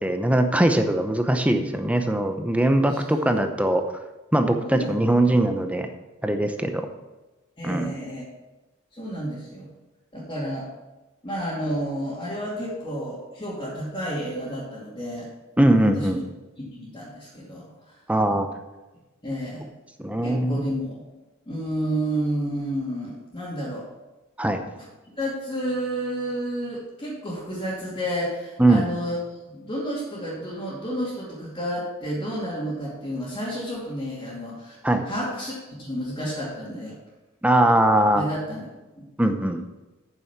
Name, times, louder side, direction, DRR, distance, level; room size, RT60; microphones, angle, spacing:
voice 1, 0.0-3.8 4.3-5.9 6.2-6.9 7.6-7.9 15.6-16.2 18.1-18.5 20.0-20.6 24.4-24.6 28.6-28.9 34.8-35.0 37.4-38.2 39.2-39.6, right 1 dB, 5° right, 6 dB, 0.7 m, -21 dB
voice 2, 2.9-3.4 4.6-5.0 7.6-8.2 8.9-9.7 10.1-10.7 11.2-15.3 15.9-16.2 16.6-18.0 19.2-19.7 20.2-21.0 21.5-23.9 24.8-24.9 25.2-29.2 29.5-34.8 35.0-35.5 35.8-37.0 38.1-38.7 39.0-39.1, equal, 25° left, -9 dB, 2.4 m, -31 dB
9.1 x 7.0 x 5.9 m, 1.1 s
head